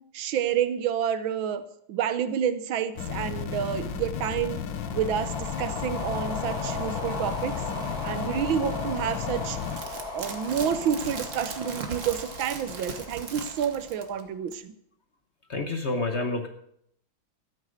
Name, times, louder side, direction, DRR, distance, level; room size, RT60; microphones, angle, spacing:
voice 1, 0.0-4.6 4.9-7.6 8.0-9.6 10.1-14.7, right 8 dB, 85° right, 12 dB, 1.7 m, -29 dB
sound 1, 3.0-9.8, left 8 dB, 75° left, 1.7 m, -34 dB
sound 2, 4.7-14.2, left 2 dB, 90° left, 8.2 m, -37 dB
sound 3, 9.6-14.2 14.5-14.6, right 4 dB, 45° right, 1.5 m, -39 dB
voice 2, 15.5-16.5, left 2 dB, 45° left, 5 dB, 1.1 m, -28 dB
12.5 x 8.9 x 6.5 m, 0.71 s
omnidirectional pair, 2.1 m